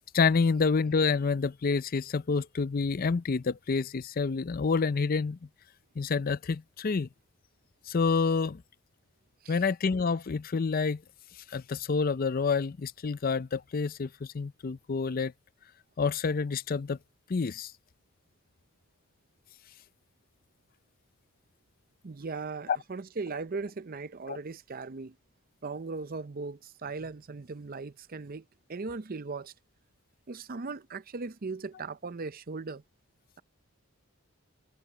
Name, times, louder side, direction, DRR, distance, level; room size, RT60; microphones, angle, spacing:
voice 1, 0.1-5.4 6.0-7.1 7.9-8.6 9.5-11.0 11.5-15.3 16.0-17.0 17.3-17.7 24.3-24.4, left 4 dB, 45° left, 0.5 m, -28 dB
voice 2, 22.0-25.2 25.6-28.4 28.7-29.5 30.3-32.8, right 4 dB, 45° right, 0.6 m, -38 dB
head